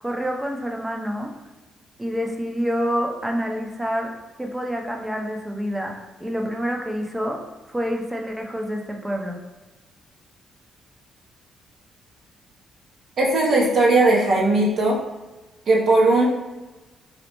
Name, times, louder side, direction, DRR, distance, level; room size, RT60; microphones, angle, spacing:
voice 1, 0.0-1.3 2.0-4.1 4.4-7.4 7.7-9.4, equal, 10° right, 2 dB, 0.6 m, -27 dB
voice 2, 13.2-15.0 15.7-16.3, right 2 dB, 55° right, -3 dB, 0.8 m, -18 dB
4.1 x 2.1 x 2.9 m, 1.2 s
cardioid pair, 90°, 0 cm